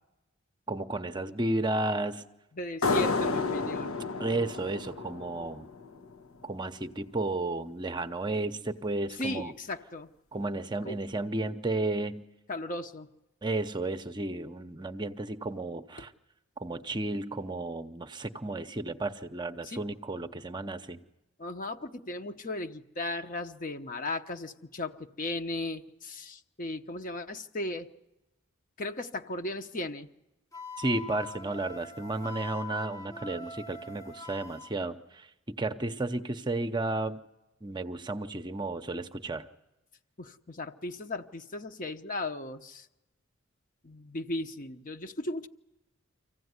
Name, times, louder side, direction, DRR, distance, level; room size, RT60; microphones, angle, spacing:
voice 1, 0.7-2.3 4.2-5.7 6.4-9.5 10.3-12.2 13.4-16.1 16.6-21.0 30.8-37.2 37.6-39.5, right 2 dB, 20° right, 8 dB, 0.7 m, -33 dB
voice 2, 2.5-4.0 9.2-10.1 10.8-11.0 12.5-13.1 19.6-19.8 21.4-27.9 28.8-30.1 33.9-34.1 40.2-42.9 43.8-45.5, left 1 dB, 40° left, 7 dB, 0.9 m, -36 dB
sound 1, 2.8-6.1, left 4 dB, 90° left, 1.2 m, -31 dB
Wind instrument woodwind instrument, 30.5-34.7, left 3 dB, 15° left, 0.9 m, -43 dB
25.5 x 15.5 x 9.5 m, 1.0 s
head